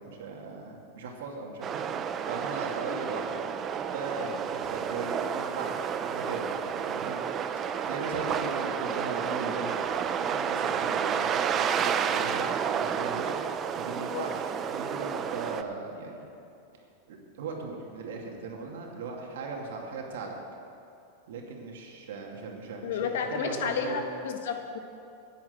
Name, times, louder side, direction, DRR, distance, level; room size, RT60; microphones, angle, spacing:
voice 1, 0.0-1.9 2.3-3.3 3.8-7.3 7.8-13.4 13.8-16.3 16.7-16.8 17.1-20.4 21.3-24.0, right 4 dB, 80° right, 0 dB, 2.4 m, -38 dB
sound 1, 1.6-15.6, right 7 dB, 30° right, 0.6 m, -31 dB
voice 2, 22.8-24.8, left 6 dB, 75° left, 5 dB, 1.5 m, -31 dB
10.5 x 9.3 x 8.0 m, 2.6 s
supercardioid pair, 130°, 0 cm